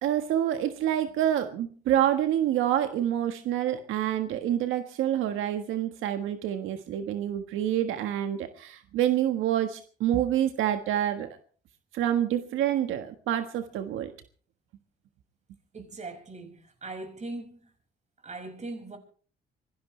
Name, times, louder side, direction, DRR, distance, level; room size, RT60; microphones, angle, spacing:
voice 1, 0.0-11.4 11.9-14.1, right 11 dB, 90° right, 1.5 m, -27 dB
voice 2, 15.7-17.7 18.2-19.0, right 2 dB, 35° right, 5.9 m, -40 dB
25.0 x 17.5 x 3.3 m
cardioid pair, 90°, 20 cm